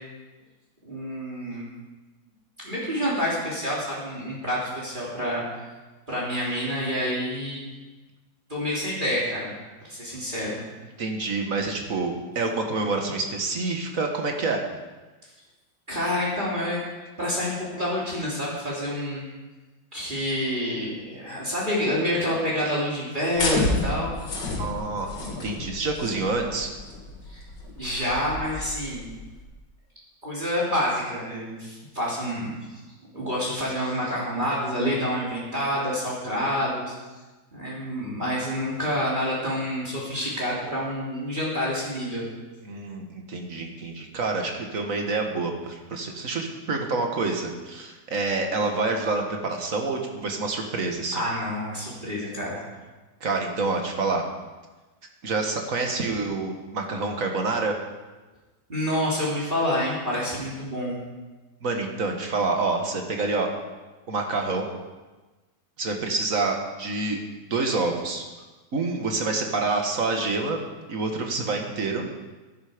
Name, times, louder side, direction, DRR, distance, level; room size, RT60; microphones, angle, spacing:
voice 1, 0.8-1.7 2.6-5.4 6.1-7.6 8.5-9.5 9.8-10.6 15.9-16.8 17.2-19.2 19.9-24.1 27.3-27.4 27.8-29.1 30.2-32.5 33.1-36.9 37.5-42.2 51.1-52.6 58.7-61.0, equal, 25° right, -6 dB, 3.2 m, -28 dB
voice 2, 11.0-14.6 24.6-26.7 42.6-51.2 53.2-54.2 55.2-57.8 61.6-63.5 64.1-64.7 65.8-67.2 67.5-68.2 68.7-70.6 70.9-72.1, right 3 dB, 45° right, 3 dB, 1.9 m, -27 dB
sound 1, 23.4-29.4, left 2 dB, 70° left, 2.6 m, -31 dB
12.5 x 10.5 x 5.1 m, 1.2 s
omnidirectional pair, 2.0 m